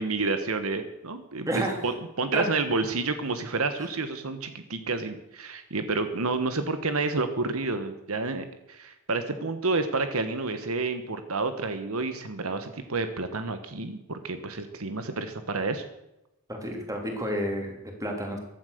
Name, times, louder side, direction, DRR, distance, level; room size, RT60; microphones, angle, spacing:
voice 1, 0.0-15.8, right 3 dB, 75° right, 9 dB, 1.3 m, -29 dB
voice 2, 1.5-1.8 2.3-2.4 3.8-3.9 16.5-18.4, equal, 15° right, 2 dB, 3.2 m, -30 dB
15.5 x 11.5 x 6.7 m, 0.90 s
head